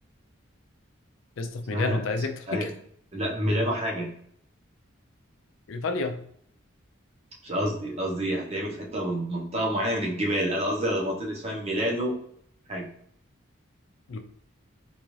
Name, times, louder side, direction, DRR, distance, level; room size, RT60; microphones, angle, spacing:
voice 1, 1.4-2.7 5.7-6.2 14.1-14.2, left 3 dB, 70° left, 6 dB, 0.4 m, -30 dB
voice 2, 3.1-4.1 7.4-12.2 12.7-12.9, equal, 30° right, -1 dB, 0.7 m, -28 dB
3.8 x 2.4 x 3.0 m, 0.65 s
head